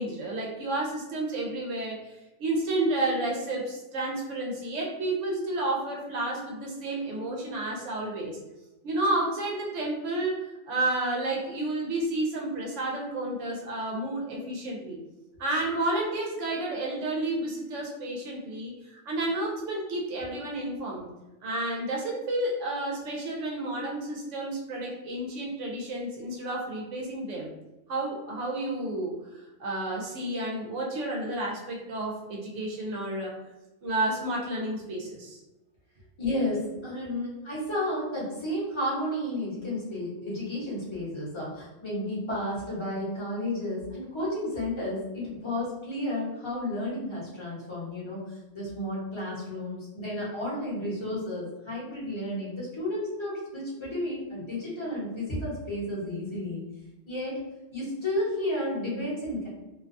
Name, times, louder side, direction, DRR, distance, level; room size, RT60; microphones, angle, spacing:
voice 1, 0.0-8.4 8.8-10.3 10.7-15.0 15.4-21.1 21.4-27.5 27.9-29.2 29.6-33.3 33.8-35.4, right 2 dB, 70° right, -1 dB, 0.9 m, -31 dB
voice 2, 36.2-56.6 57.1-57.4 57.7-59.5, left 1 dB, 25° left, -7 dB, 0.9 m, -32 dB
2.5 x 2.2 x 2.5 m, 1.0 s
omnidirectional pair, 1.4 m